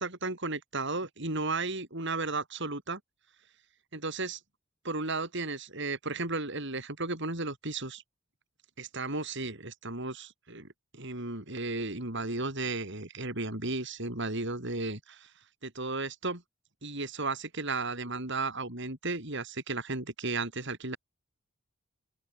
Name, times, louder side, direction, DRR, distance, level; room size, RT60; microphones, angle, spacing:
voice 1, 0.0-3.0 3.9-4.4 4.8-8.0 8.8-10.7 10.9-15.3 15.6-16.4 16.8-21.0, right 3 dB, 60° right, 5.8 m, -34 dB
open air
head